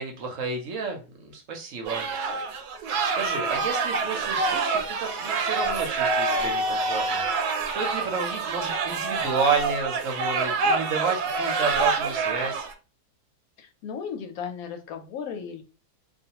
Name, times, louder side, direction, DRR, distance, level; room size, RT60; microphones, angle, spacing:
voice 1, 0.0-7.3 7.7-12.7, right 5 dB, 65° right, 2 dB, 0.9 m, -31 dB
sound 1, 1.8-12.7, right 4 dB, 80° right, 1.1 m, -27 dB
voice 2, 13.6-15.6, left 7 dB, 70° left, 6 dB, 1.0 m, -35 dB
2.4 x 2.4 x 2.8 m, 0.34 s
omnidirectional pair, 1.7 m